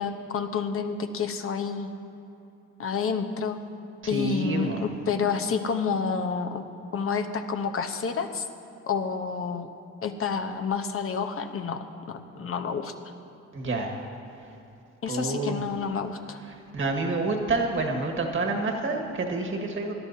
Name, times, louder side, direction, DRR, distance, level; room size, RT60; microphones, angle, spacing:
voice 1, 0.0-1.9 2.8-3.6 4.1-6.6 6.9-8.4 8.9-9.7 10.0-12.9 15.0-16.4, left 5 dB, 45° left, 7 dB, 1.0 m, -29 dB
voice 2, 4.0-4.8 13.5-14.0 15.1-15.6 16.7-19.9, right 3 dB, 40° right, 2 dB, 1.7 m, -28 dB
21.0 x 11.5 x 2.8 m, 2.9 s
cardioid pair, 90°, 30 cm